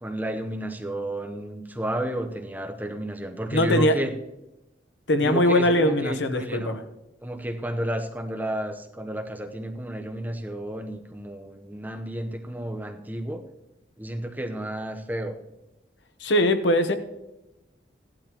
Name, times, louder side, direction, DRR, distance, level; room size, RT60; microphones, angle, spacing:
voice 1, 0.0-4.1 5.2-6.8 7.2-13.4 14.0-15.4, right 1 dB, 10° right, 4 dB, 0.9 m, -31 dB
voice 2, 3.5-4.0 5.1-6.8 16.2-17.0, left 1 dB, 90° left, 9 dB, 1.1 m, -21 dB
16.0 x 11.5 x 3.0 m, 0.97 s
head